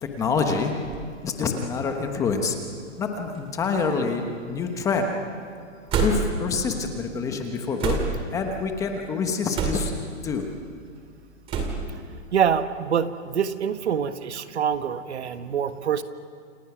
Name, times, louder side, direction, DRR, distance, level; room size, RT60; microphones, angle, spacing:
voice 1, 0.2-0.8 1.2-2.6 3.0-5.0 6.0-8.0 8.3-9.9 10.2-10.4, left 5 dB, 10° left, 4 dB, 1.1 m, -26 dB
sound 1, 0.8-1.1 1.9-2.0 3.3-3.5 3.8-4.3 5.9-6.5 7.8-8.3 9.5-10.1 11.5-11.9, right 4 dB, 15° right, 2.3 m, -27 dB
voice 2, 12.3-16.0, right 8 dB, 55° right, 10 dB, 1.5 m, -25 dB
30.0 x 29.0 x 6.1 m, 2.2 s
hypercardioid pair, 160°, 39 cm